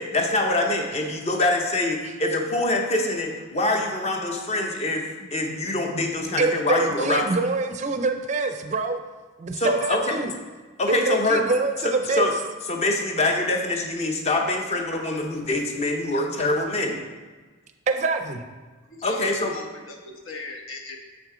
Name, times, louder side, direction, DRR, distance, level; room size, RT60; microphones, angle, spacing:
voice 1, 0.0-7.3 9.6-10.2 10.8-11.4 11.8-12.3 12.7-17.0 19.0-19.5, left 2 dB, 30° left, 2 dB, 0.7 m, -24 dB
voice 2, 6.4-9.0 9.4-10.3 10.9-12.3 17.9-18.4, right 3 dB, 35° right, 7 dB, 0.4 m, -25 dB
voice 3, 18.9-21.0, left 3 dB, 80° left, 2 dB, 1.1 m, -39 dB
7.2 x 6.0 x 3.7 m, 1.3 s
head